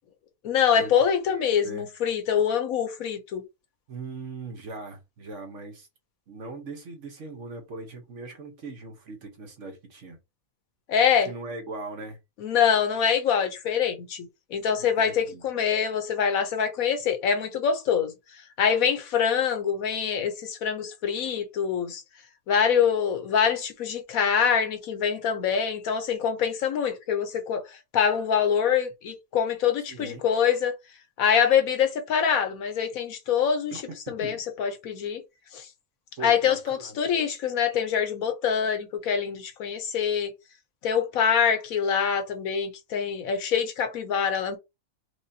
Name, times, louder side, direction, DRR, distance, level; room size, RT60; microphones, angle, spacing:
voice 1, 0.4-3.4 10.9-11.3 12.4-18.1 18.6-22.0 22.5-27.6 27.9-30.7 31.2-33.7 34.1-35.2 35.5-35.7 36.2-40.3 40.8-44.6, left 7 dB, 75° left, 1.2 m, -25 dB
voice 2, 1.3-1.9 3.9-5.9 6.3-10.2 11.2-12.2 15.1-15.4 29.9-30.2 33.7-34.4 36.2-37.0, right 3 dB, 60° right, 1.2 m, -40 dB
4.8 x 2.2 x 2.7 m
omnidirectional pair, 1.5 m